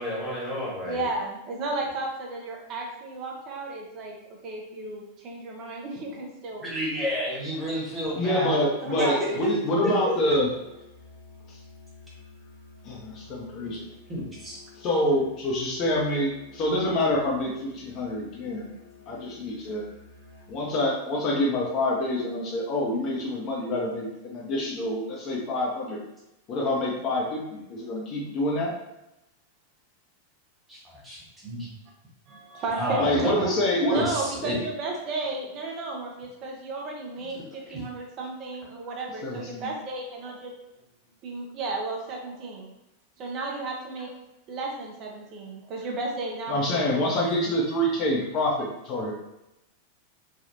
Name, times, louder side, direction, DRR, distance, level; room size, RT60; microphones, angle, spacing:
voice 1, 0.0-1.0 6.6-8.6 9.0-9.3 9.8-10.3 14.1-14.6 30.7-31.2 31.4-31.7 32.7-33.5 33.9-34.6 37.7-37.8, equal, 10° right, -5 dB, 1.2 m, -30 dB
voice 2, 0.8-6.7 8.8-9.5 32.3-33.2 33.9-40.5 41.2-42.7 43.2-44.1 44.5-47.4, right 2 dB, 35° right, 0 dB, 0.7 m, -33 dB
voice 3, 8.2-10.5 11.5-11.6 12.8-13.9 14.8-18.7 19.1-19.9 20.5-26.0 26.5-28.7 33.0-34.0 39.2-39.7 46.5-49.1, left 1 dB, 35° left, -3 dB, 0.6 m, -26 dB
Musical instrument, 10.2-20.6, left 3 dB, 75° left, 0.7 m, -51 dB
3.4 x 2.3 x 2.7 m, 0.91 s
figure-of-eight pair, 90°, 0 cm